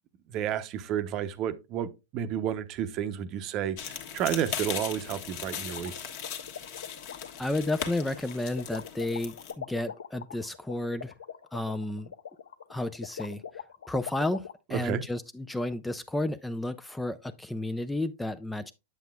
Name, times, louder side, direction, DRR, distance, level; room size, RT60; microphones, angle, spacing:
voice 1, 0.3-5.9 14.7-15.0, right 9 dB, 40° right, 0.7 m, -31 dB
sound 1, 3.8-9.5, left 8 dB, 55° left, 1.4 m, -38 dB
sound 2, 5.4-14.5, left 8 dB, 85° left, 0.6 m, -42 dB
voice 2, 7.4-11.1 11.5-12.1 12.7-18.7, left 2 dB, 5° left, 0.4 m, -32 dB
8.2 x 7.6 x 2.3 m
hypercardioid pair, 125°, 0 cm